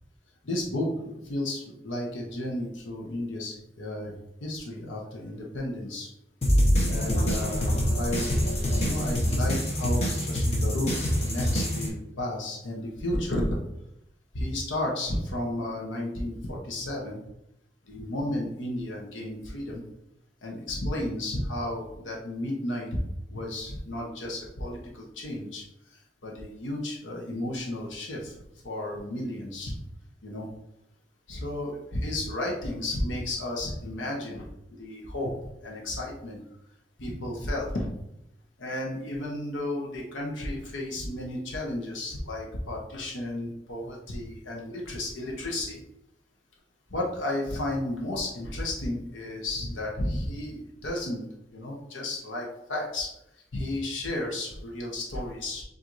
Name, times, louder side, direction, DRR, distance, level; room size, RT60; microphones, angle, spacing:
voice 1, 0.4-6.1 6.9-8.4 8.8-13.6 14.3-17.2 17.8-19.8 20.4-23.0 23.3-29.8 30.2-30.5 31.3-34.5 34.8-35.3 35.6-36.4 37.0-37.9 38.6-45.8 46.9-51.2 51.5-53.1 53.5-55.6, left 1 dB, 85° left, -2 dB, 0.9 m, -33 dB
sound 1, 6.4-11.9, equal, 35° left, 1.0 m, -25 dB
7.3 x 2.6 x 2.6 m, 0.82 s
head